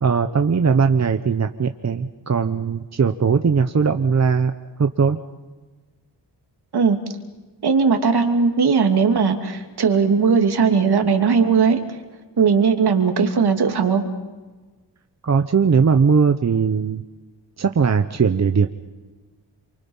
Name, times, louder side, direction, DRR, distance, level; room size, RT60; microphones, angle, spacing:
voice 1, 0.0-4.5 4.8-5.2 15.2-17.0 17.6-18.7, right 5 dB, 40° right, 7 dB, 1.1 m, -19 dB
voice 2, 7.6-12.0 12.4-14.0, right 5 dB, 65° right, 4 dB, 2.9 m, -18 dB
28.5 x 24.5 x 5.6 m, 1.3 s
wide cardioid pair, 105°, 42 cm